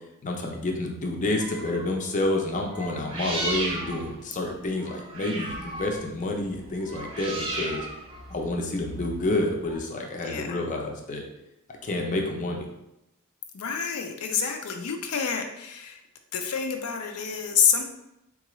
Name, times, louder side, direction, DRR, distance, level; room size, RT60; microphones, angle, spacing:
voice 1, 0.2-7.9 8.3-11.2 11.8-12.7, left 2 dB, 35° left, 1 dB, 0.5 m, -29 dB
sound 1, 1.4-1.9 2.7-9.8, right 1 dB, 25° right, 0.5 m, -35 dB
voice 2, 10.2-10.6 13.5-16.0 16.3-17.8, left 7 dB, 85° left, 5 dB, 0.5 m, -27 dB
3.7 x 2.4 x 3.0 m, 0.88 s
head